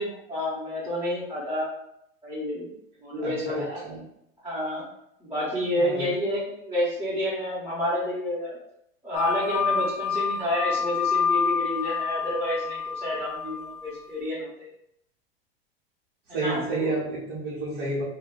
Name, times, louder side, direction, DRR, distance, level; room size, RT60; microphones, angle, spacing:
voice 1, 0.0-1.7 2.2-2.7 3.0-3.8 4.4-4.8 5.2-8.6 9.0-14.7 16.3-17.0, left 1 dB, 5° right, -11 dB, 1.0 m, -29 dB
voice 2, 3.2-4.0 5.8-6.1 16.3-18.0, right 2 dB, 50° right, -5 dB, 0.8 m, -31 dB
sound 1, 9.1-14.0, left 6 dB, 55° left, 0.6 m, -28 dB
2.2 x 2.0 x 3.7 m, 0.78 s
supercardioid pair, 130°, 30 cm